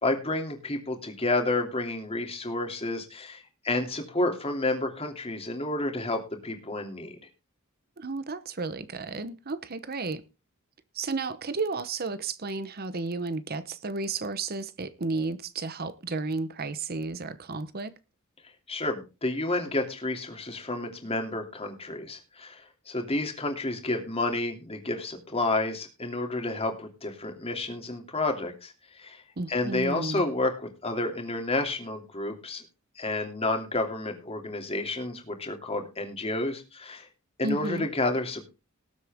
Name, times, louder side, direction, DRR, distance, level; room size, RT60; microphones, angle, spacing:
voice 1, 0.0-7.2 18.7-29.2 29.5-30.5 30.8-32.6 33.0-37.1 37.4-38.5, left 2 dB, 30° left, 2.9 m, -30 dB
voice 2, 8.0-10.2 10.9-17.9 29.4-30.3 37.4-37.9, right 3 dB, 45° right, 0.9 m, -33 dB
19.0 x 8.2 x 3.6 m
head